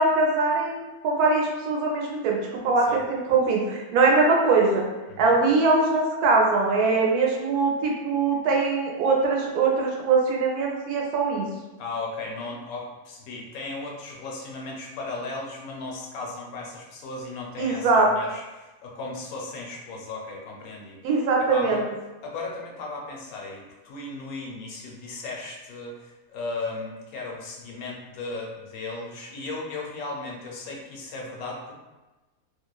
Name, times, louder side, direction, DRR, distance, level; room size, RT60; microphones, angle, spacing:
voice 1, 0.0-4.8 5.2-11.5 17.6-18.1 21.0-21.8, right 3 dB, 90° right, -1 dB, 1.1 m, -22 dB
voice 2, 5.1-5.4 11.8-21.0 21.4-21.8 22.2-31.7, left 3 dB, 80° left, -2 dB, 1.0 m, -36 dB
2.7 x 2.0 x 2.2 m, 1.1 s
omnidirectional pair, 1.6 m